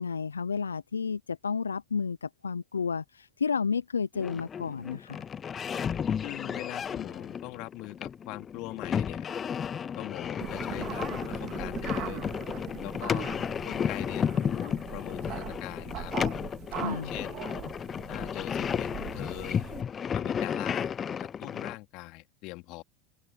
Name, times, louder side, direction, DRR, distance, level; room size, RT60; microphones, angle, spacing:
voice 1, 0.0-5.2 16.7-17.1, left 5 dB, 90° left, 0.6 m, -31 dB
sound 1, 4.1-21.7, left 7 dB, 30° left, 0.7 m, -33 dB
voice 2, 6.2-9.2 10.0-12.3 12.8-13.3 13.6-16.1 17.0-17.4 18.1-19.6 20.1-20.9 21.2-22.8, left 23 dB, 55° left, 2.7 m, -41 dB
sound 2, 10.4-19.8, right 15 dB, 50° right, 2.9 m, -41 dB
open air
hypercardioid pair, 80°, 0 cm